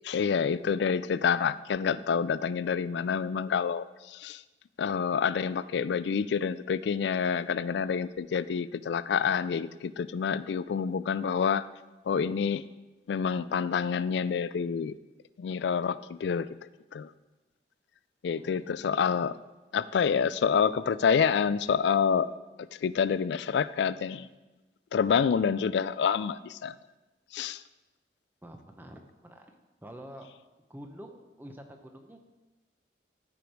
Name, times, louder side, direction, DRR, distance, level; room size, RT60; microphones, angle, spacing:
voice 1, 0.0-4.4 4.8-11.7 12.1-12.6 13.1-14.9 15.4-16.5 16.9-17.1 18.2-19.4 19.7-22.3 22.8-24.3 24.9-26.7 27.3-27.6, left 6 dB, 70° left, 17 dB, 0.3 m, -27 dB
voice 2, 18.4-18.9 28.4-29.5 29.8-30.3 30.7-32.2, equal, 10° right, 4 dB, 0.8 m, -47 dB
13.0 x 5.1 x 4.6 m, 1.1 s
head